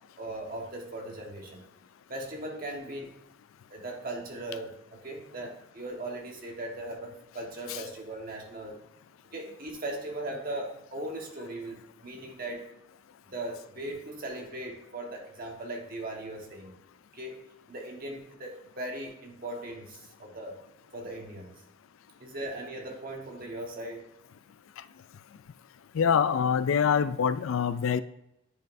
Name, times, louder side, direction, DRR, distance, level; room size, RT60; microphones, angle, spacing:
voice 1, 0.2-1.6 2.1-3.1 3.7-8.8 9.3-12.6 13.3-16.7 17.1-17.4 17.7-20.6 20.9-21.5 22.2-24.1, right 1 dB, 45° right, 1 dB, 1.4 m, -38 dB
voice 2, 25.9-28.0, left 7 dB, 90° left, 14 dB, 0.4 m, -25 dB
10.0 x 5.3 x 2.6 m, 0.85 s
head